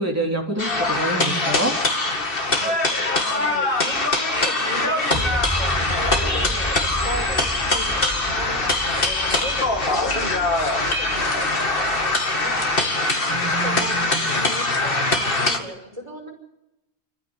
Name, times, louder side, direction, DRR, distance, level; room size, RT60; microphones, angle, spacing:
voice 1, 0.0-1.8 13.3-14.2, right 1 dB, 15° right, 0 dB, 3.7 m, -26 dB
sound 1, 0.6-15.6, left 2 dB, 65° left, 2.4 m, -22 dB
voice 2, 2.4-5.7 6.1-7.4 7.6-12.5 12.9-16.3, equal, 30° right, 1 dB, 5.2 m, -36 dB
sound 2, 5.1-12.6, equal, 20° left, 8.1 m, -32 dB
26.5 x 15.0 x 8.3 m, 0.91 s
omnidirectional pair, 1.0 m